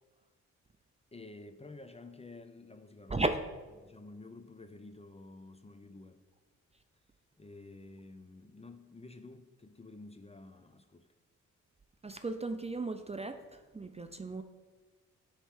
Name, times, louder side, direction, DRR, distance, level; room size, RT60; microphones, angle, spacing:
voice 1, 1.1-3.2 3.8-6.2 7.4-11.1 14.1-14.2, left 2 dB, 20° left, 0.7 m, -51 dB
voice 2, 3.1-3.4 12.0-14.4, right 2 dB, 20° right, 0.6 m, -35 dB
9.6 x 3.2 x 6.2 m
hypercardioid pair, 45°, 35 cm